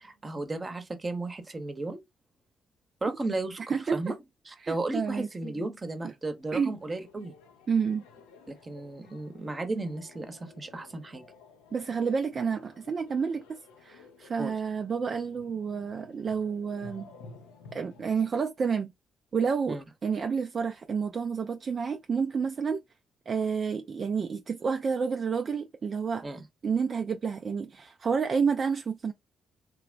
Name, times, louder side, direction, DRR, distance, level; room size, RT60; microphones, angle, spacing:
voice 1, 0.0-2.0 3.0-3.6 3.9-4.1 4.5-7.3 8.5-11.2 14.4-14.5 19.7-19.8 26.2-26.4, right 2 dB, 30° right, 0.8 m, -34 dB
voice 2, 3.7-4.1 4.6-5.3 6.0-6.1 6.5-6.7 7.7-8.0 11.7-17.1 17.7-18.9 19.3-22.8 23.3-26.3 26.6-29.1, right 6 dB, 50° right, 0.3 m, -29 dB
sound 1, 6.3-18.3, left 4 dB, 85° left, 0.4 m, -53 dB
2.9 x 2.1 x 2.4 m
hypercardioid pair, 45°, 0 cm